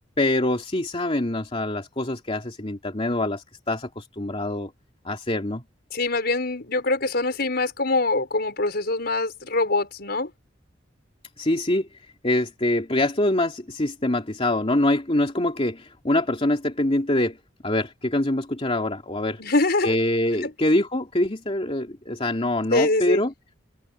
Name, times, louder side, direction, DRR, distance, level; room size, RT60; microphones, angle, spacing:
voice 1, 0.2-4.7 5.0-5.6 11.4-11.9 12.2-17.4 17.6-19.4 19.8-23.3, left 1 dB, 30° left, 2.8 m, -24 dB
voice 2, 5.9-10.3 19.4-20.0 20.4-20.5 22.7-23.3, left 2 dB, 60° left, 5.7 m, -24 dB
head